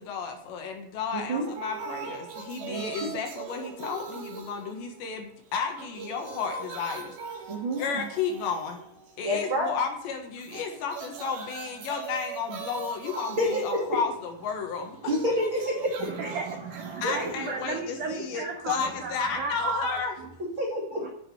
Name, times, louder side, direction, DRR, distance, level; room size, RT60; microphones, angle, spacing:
voice 1, 0.0-7.2 7.7-8.8 9.2-15.1 17.0-20.2, left 6 dB, 70° left, 3 dB, 3.6 m, -32 dB
voice 2, 1.1-1.5 2.7-3.1 7.5-8.0 9.2-9.7 13.4-13.8 15.1-16.1 17.0-17.3 20.4-21.0, equal, 35° right, -2 dB, 2.3 m, -28 dB
sound 1, 1.3-5.3 5.6-9.4 10.4-18.4, right 5 dB, 60° right, 3.3 m, -41 dB
voice 3, 16.0-20.3 20.9-21.1, right 4 dB, 75° right, 2 dB, 1.8 m, -34 dB
9.8 x 8.1 x 8.2 m, 0.67 s
omnidirectional pair, 5.7 m